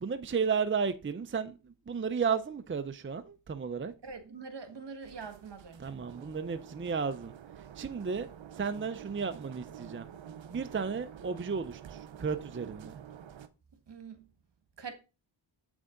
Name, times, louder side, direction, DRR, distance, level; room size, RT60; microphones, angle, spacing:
voice 1, 0.0-3.9 5.8-7.3 7.8-8.3 8.5-10.1 10.5-12.9, right 5 dB, 25° right, 0.6 m, -33 dB
voice 2, 4.0-6.0 13.9-14.3 14.8-14.9, right 5 dB, 65° right, 1.7 m, -44 dB
sound 1, 5.0-13.5, right 9 dB, 80° right, 0.8 m, -49 dB
8.1 x 6.2 x 3.8 m
wide cardioid pair, 80°, 45 cm